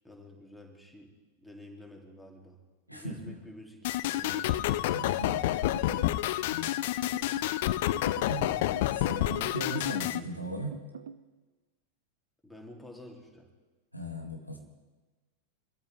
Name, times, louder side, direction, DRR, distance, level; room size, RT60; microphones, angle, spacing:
voice 1, 0.0-1.1 1.4-2.6 2.9-4.6 8.2-8.6 12.4-13.5, left 1 dB, ahead, 0 dB, 2.7 m, -50 dB
voice 2, 2.9-3.4 4.9-6.1 6.5-6.7 8.3-8.5 9.0-10.8 13.9-14.6, right 1 dB, 90° right, 1 dB, 2.4 m, -38 dB
sound 1, 3.8-10.2, left 15 dB, 50° left, 0.4 m, -29 dB
sound 2, 4.3-5.2 5.6-6.2 7.0-7.6 7.9-9.0 9.3-9.9 10.7-11.2, right 7 dB, 65° right, 0.5 m, -45 dB
24.0 x 13.5 x 3.4 m, 1.2 s
figure-of-eight pair, 90°, 0 cm